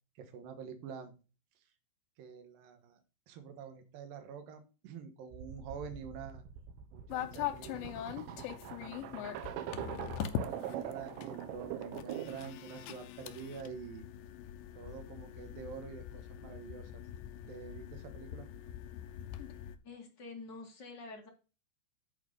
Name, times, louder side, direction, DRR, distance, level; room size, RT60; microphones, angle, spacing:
voice 1, 0.2-1.1 2.2-3.0 3.3-6.4 6.9-7.9 8.6-14.0 14.8-16.9 17.5-18.5, right 7 dB, 65° right, 6 dB, 2.7 m, -47 dB
sound 1, 5.3-12.5, right 11 dB, 90° right, 3.3 m, -43 dB
sound 2, 7.1-19.8, left 11 dB, 85° left, 3.0 m, -43 dB
voice 2, 19.8-21.3, left 3 dB, 45° left, 1 dB, 1.4 m, -47 dB
11.0 x 4.5 x 5.1 m, 0.32 s
omnidirectional pair, 5.1 m